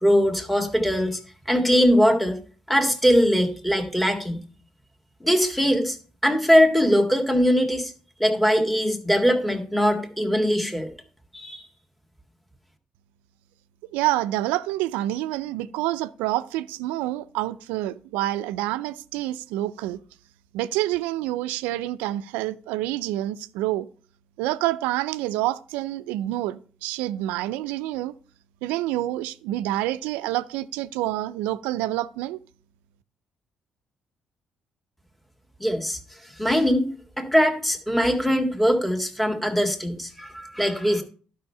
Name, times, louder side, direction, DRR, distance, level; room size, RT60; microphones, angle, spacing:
voice 1, 0.0-1.2 1.5-2.4 2.7-4.5 5.2-6.0 6.2-7.9 8.2-10.9 11.3-11.7 35.6-36.0 36.4-41.0, equal, 5° left, 1.9 m, -21 dB
voice 2, 13.9-20.0 20.5-23.9 24.4-28.1 28.6-32.4, right 15 dB, 90° right, 0.4 m, -27 dB
11.5 x 5.6 x 5.5 m
supercardioid pair, 60°, 3 cm